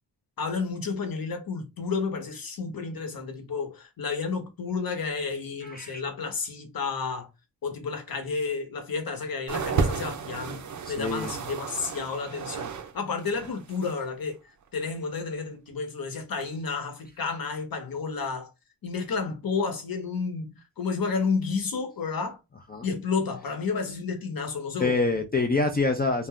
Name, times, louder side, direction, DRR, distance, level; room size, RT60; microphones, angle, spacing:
voice 1, 0.4-7.3 7.6-10.6 10.9-14.4 14.7-18.5 18.8-22.4 22.8-25.0, left 4 dB, 55° left, 0.9 m, -31 dB
voice 2, 5.6-6.0 10.9-11.3 22.7-22.9 24.8-26.3, left 3 dB, 25° left, 0.3 m, -26 dB
sound 1, 9.5-12.9 13.2-14.1 14.8-14.9, right 5 dB, 45° right, 0.5 m, -32 dB
2.5 x 2.2 x 3.5 m
wide cardioid pair, 105°, 43 cm